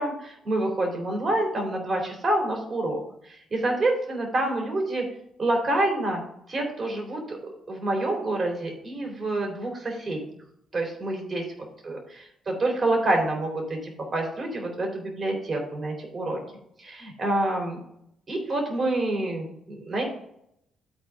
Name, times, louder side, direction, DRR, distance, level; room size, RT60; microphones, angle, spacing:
voice 1, 0.0-5.0 5.4-6.2 6.5-7.4 7.7-10.2 10.7-11.4 11.8-16.4 16.8-17.8 18.3-20.1, right 2 dB, 40° right, 1 dB, 3.7 m, -27 dB
12.5 x 4.5 x 3.7 m, 0.73 s
cardioid pair, 90°, 0 cm